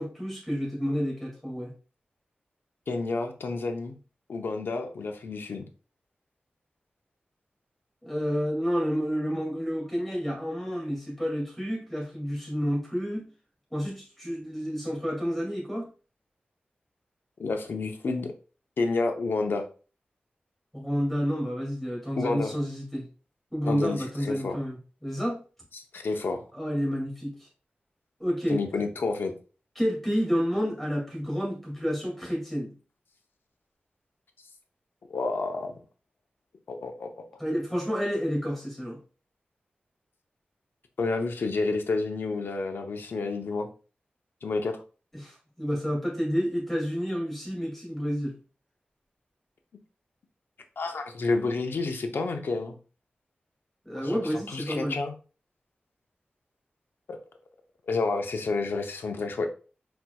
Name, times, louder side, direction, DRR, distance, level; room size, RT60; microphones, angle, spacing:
voice 1, 0.0-1.7 8.0-13.3 13.7-15.9 20.7-23.1 23.5-25.4 26.5-27.4 28.2-28.8 29.8-32.7 37.4-39.0 45.1-48.3 53.8-55.0, equal, 5° left, -1 dB, 2.2 m, -30 dB
voice 2, 2.9-4.0 4.3-5.6 17.4-18.3 18.8-19.7 22.1-22.5 23.7-24.6 25.7-26.4 28.5-29.3 35.1-35.7 36.7-37.2 41.0-43.7 44.4-44.8 50.8-52.8 53.9-54.2 54.5-55.1 57.1-57.2 57.9-59.5, left 3 dB, 80° left, 4 dB, 0.7 m, -29 dB
4.4 x 4.4 x 2.3 m, 0.36 s
wide cardioid pair, 85°, 4 cm